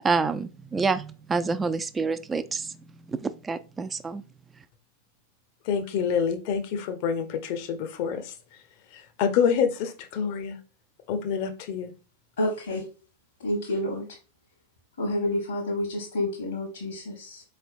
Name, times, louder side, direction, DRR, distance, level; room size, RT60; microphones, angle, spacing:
voice 1, 0.0-2.7 3.1-4.2, right 4 dB, 15° right, 0.3 m, -27 dB
voice 2, 5.6-8.3 8.9-10.6 11.1-11.9, left 7 dB, 45° left, 0.7 m, -27 dB
voice 3, 12.4-12.8 13.4-14.0 15.0-17.4, left 1 dB, 65° left, 1.3 m, -29 dB
4.4 x 3.3 x 2.5 m
figure-of-eight pair, 90°, 0 cm